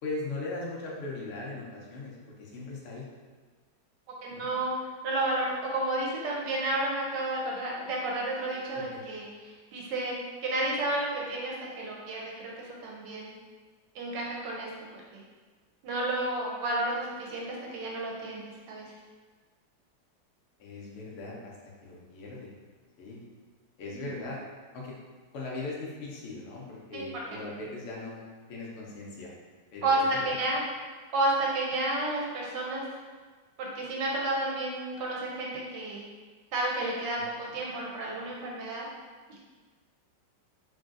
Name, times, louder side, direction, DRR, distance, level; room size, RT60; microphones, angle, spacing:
voice 1, 0.0-3.1 4.3-4.5 8.9-9.0 20.6-22.5 23.0-23.2 23.8-24.4 24.7-25.0 25.3-29.3 29.7-30.4 37.2-37.3, left 3 dB, 85° left, -4 dB, 0.6 m, -39 dB
voice 2, 4.2-4.7 5.0-10.2 10.4-13.4 13.9-15.2 15.8-18.9 23.9-24.1 26.9-27.1 29.8-30.6 31.1-32.8 33.6-36.1 36.5-38.9, right 2 dB, 75° right, -3 dB, 1.2 m, -31 dB
3.0 x 2.6 x 2.4 m, 1.4 s
omnidirectional pair, 2.0 m